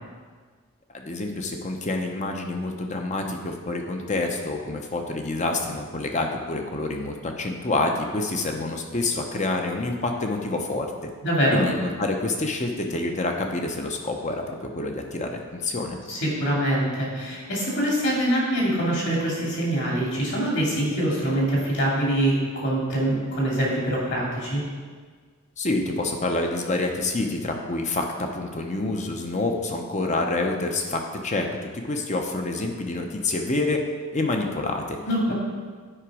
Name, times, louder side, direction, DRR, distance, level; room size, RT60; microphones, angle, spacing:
voice 1, 0.9-10.9 11.5-16.0 25.6-33.8 34.1-35.0 35.3-35.4, left 2 dB, 35° left, 3 dB, 0.7 m, -27 dB
voice 2, 11.2-11.7 16.1-24.6 35.0-35.3, right 1 dB, 55° left, -4 dB, 2.5 m, -24 dB
8.9 x 5.0 x 4.9 m, 1.5 s
head